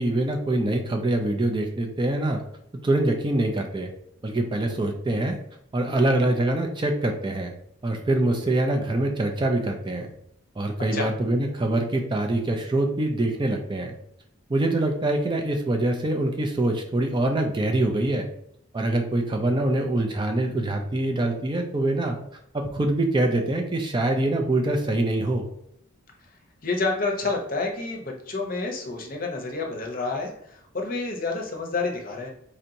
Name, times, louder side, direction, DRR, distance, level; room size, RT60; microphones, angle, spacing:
voice 1, 0.0-2.4 2.8-3.9 4.2-5.4 5.7-7.5 7.8-10.1 10.6-13.9 14.5-18.3 18.7-22.2 22.5-25.5, right 1 dB, 20° right, 3 dB, 0.4 m, -24 dB
voice 2, 26.6-32.3, left 3 dB, 40° left, 1 dB, 0.7 m, -29 dB
4.3 x 2.8 x 2.6 m, 0.72 s
head